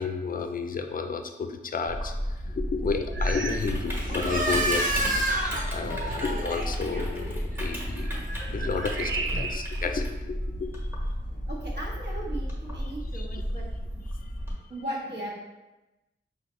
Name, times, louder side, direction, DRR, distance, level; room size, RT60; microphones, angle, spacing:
voice 1, 0.0-10.7 11.3-11.4 13.1-13.4 14.2-14.3, left 5 dB, 50° left, 7 dB, 0.4 m, -32 dB
Typing, 1.9-14.5, equal, 10° right, 1.3 m, -33 dB
sound 1, 3.1-3.8 4.1-4.4 5.1-5.2 7.6-9.9 10.4-11.5, right 3 dB, 90° right, 0.5 m, -36 dB
sound 2, 3.9-9.3, right 1 dB, 45° right, 0.7 m, -31 dB
voice 2, 5.8-6.2 9.3-9.4 11.5-13.7 13.9-14.0 14.5-15.4, right 1 dB, 65° right, -5 dB, 1.3 m, -38 dB
5.7 x 2.8 x 3.1 m, 1.1 s
wide cardioid pair, 125°, 19 cm